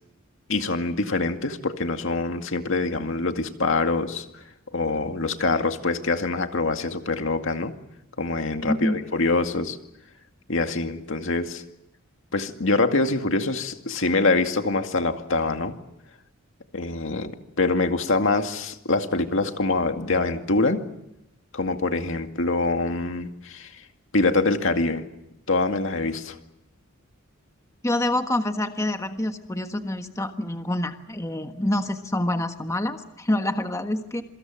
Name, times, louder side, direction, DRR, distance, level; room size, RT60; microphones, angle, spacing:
voice 1, 0.5-4.4 4.7-7.7 8.2-9.8 10.5-11.6 12.3-15.7 16.7-20.8 21.5-23.8 24.1-25.0 25.5-26.4, left 3 dB, 70° left, 6 dB, 2.2 m, -25 dB
voice 2, 8.6-9.0 27.8-34.2, left 1 dB, 15° left, 6 dB, 1.4 m, -26 dB
27.5 x 24.5 x 7.6 m, 0.86 s
head